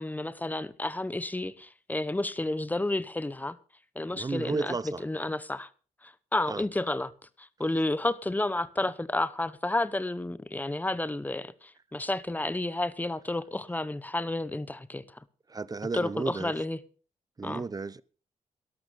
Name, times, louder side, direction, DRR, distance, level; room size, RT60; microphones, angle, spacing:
voice 1, 0.0-3.6 3.9-4.7 5.0-5.7 6.0-7.1 7.4-15.2 15.9-16.8 17.4-17.6, left 2 dB, 10° left, 0.9 m, -31 dB
voice 2, 4.1-5.0 6.5-6.7 15.5-16.6 17.4-18.0, right 4 dB, 30° right, 0.7 m, -33 dB
13.0 x 12.0 x 5.3 m
cardioid pair, 85°, 14 cm